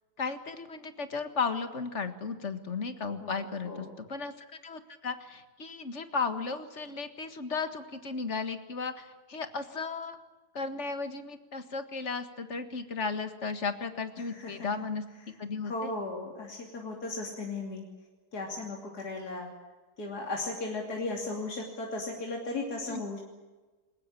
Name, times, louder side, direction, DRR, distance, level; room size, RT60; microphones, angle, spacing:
voice 1, 0.2-10.2 10.5-15.0 15.4-15.9 22.9-23.0, left 4 dB, 45° left, 9 dB, 2.0 m, -35 dB
voice 2, 3.2-3.9 14.2-14.7 15.2-15.3 15.6-17.8 18.3-19.5 20.0-23.2, left 2 dB, 75° left, 0 dB, 3.5 m, -36 dB
22.0 x 19.5 x 8.7 m, 1.2 s
omnidirectional pair, 1.7 m